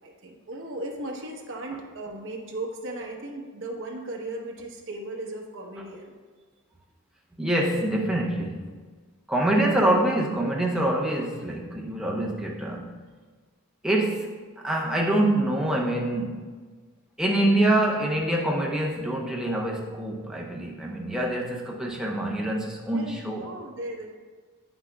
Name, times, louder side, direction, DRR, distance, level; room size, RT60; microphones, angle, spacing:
voice 1, 0.0-6.1 9.4-9.7 22.9-24.1, right 2 dB, 55° right, 1 dB, 0.9 m, -36 dB
voice 2, 7.4-8.7 9.3-12.9 13.8-14.3 14.6-16.5 17.2-23.4, right 1 dB, 5° right, -2 dB, 0.6 m, -25 dB
8.6 x 6.0 x 2.2 m, 1.5 s
head